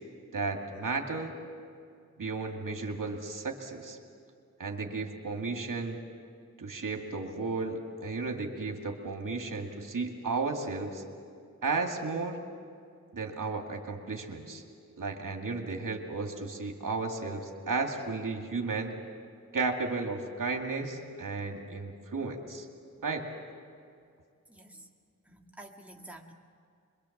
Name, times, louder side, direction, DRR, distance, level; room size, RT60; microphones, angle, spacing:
voice 1, 0.3-1.3 2.2-4.0 4.6-6.0 6.6-11.0 11.6-12.4 13.1-14.6 15.0-18.9 19.5-22.7 23.0-23.3, right 3 dB, 80° right, 2 dB, 2.3 m, -34 dB
voice 2, 24.5-24.9 25.3-26.3, right 1 dB, 5° right, 0 dB, 2.0 m, -49 dB
25.5 x 23.0 x 7.3 m, 2.3 s
wide cardioid pair, 80°, 31 cm